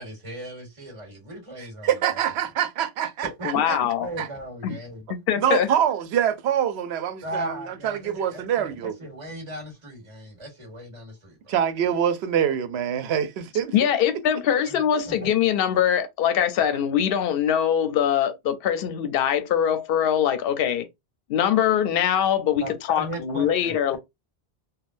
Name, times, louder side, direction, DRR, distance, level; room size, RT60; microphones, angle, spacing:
voice 1, 0.0-2.2 3.4-3.5 4.0-5.0 7.2-11.5 14.7-14.8 15.0-15.3 22.6-24.0, right 1 dB, 30° right, 1.4 m, -37 dB
voice 2, 1.8-3.8 4.2-4.3 5.4-8.9 11.5-13.7, right 9 dB, 90° right, 0.8 m, -25 dB
voice 3, 3.4-4.1 4.6-4.8 5.1-5.7 13.7-20.9 21.3-24.0, left 9 dB, 70° left, 0.7 m, -23 dB
3.5 x 2.2 x 2.5 m
omnidirectional pair, 1.1 m